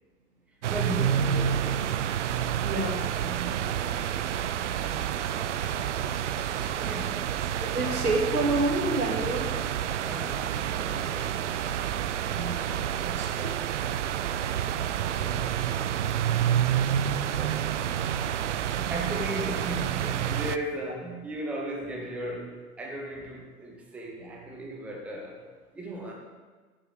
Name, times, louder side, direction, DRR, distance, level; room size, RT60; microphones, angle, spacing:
sound 1, 0.6-20.6, right 9 dB, 55° right, 0.5 m, -29 dB
voice 1, 0.7-2.0 3.2-5.0 6.8-7.4 10.0-11.6 15.1-16.7 17.3-18.0 18.7-25.5 25.7-26.1, right 1 dB, 5° right, -1 dB, 0.8 m, -37 dB
voice 2, 2.6-3.0 7.6-9.5 12.3-13.6, right 2 dB, 85° right, -1 dB, 2.1 m, -29 dB
11.0 x 7.9 x 3.3 m, 1.4 s
figure-of-eight pair, 105°, 46 cm